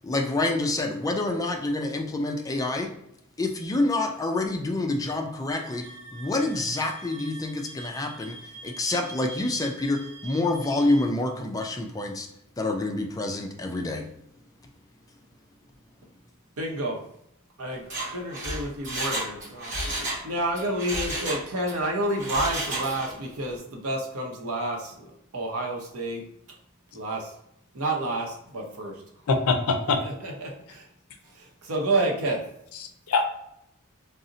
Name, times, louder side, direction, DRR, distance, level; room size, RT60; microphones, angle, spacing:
voice 1, 0.0-2.9 3.4-8.4 8.6-12.3 12.6-14.1, left 2 dB, 15° left, 3 dB, 0.3 m, -27 dB
sound 1, 5.5-11.0, right 2 dB, 50° right, 0.5 m, -45 dB
voice 2, 16.6-17.0 17.6-26.2 26.9-27.3 27.7-28.9 30.0-30.9 31.2-32.4, right 1 dB, 85° right, 1 dB, 0.7 m, -30 dB
Mechanisms, 17.8-20.2 20.5-21.8 22.1-23.2 23.5-23.6, right 1 dB, 35° right, 0.9 m, -32 dB
voice 3, 29.3-30.0 32.7-33.2, left 4 dB, 75° left, 6 dB, 0.5 m, -24 dB
2.6 x 2.0 x 3.7 m, 0.77 s
head